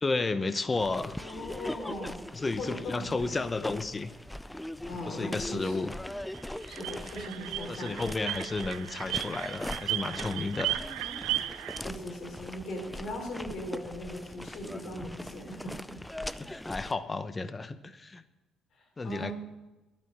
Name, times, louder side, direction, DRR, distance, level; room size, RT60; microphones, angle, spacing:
voice 1, 0.0-1.1 2.3-4.1 5.1-5.9 7.7-10.8 16.4-18.2 19.0-19.3, left 3 dB, 25° left, 12 dB, 0.9 m, -32 dB
sound 1, 0.8-16.9, left 1 dB, 5° left, 0.5 m, -41 dB
voice 2, 1.2-2.2 2.6-3.2 4.9-5.8 6.7-8.0 11.8-15.7 18.7-19.3, left 1 dB, 65° left, 1 dB, 4.1 m, -39 dB
sound 2, 6.3-11.8, right 15 dB, 85° right, 0.4 m, -35 dB
11.5 x 8.8 x 6.6 m, 1.1 s
supercardioid pair, 70°, 0 cm